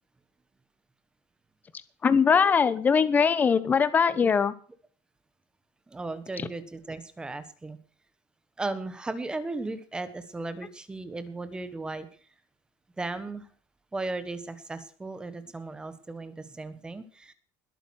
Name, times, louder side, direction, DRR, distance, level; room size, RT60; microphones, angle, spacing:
voice 1, 2.0-4.5 6.4-6.5, left 6 dB, 20° left, 16 dB, 1.0 m, -21 dB
voice 2, 5.9-7.8 8.6-12.1 13.0-13.5 13.9-17.3, right 2 dB, 10° right, 12 dB, 1.4 m, -36 dB
20.5 x 9.1 x 6.4 m, 0.43 s
cardioid pair, 175°, 9 cm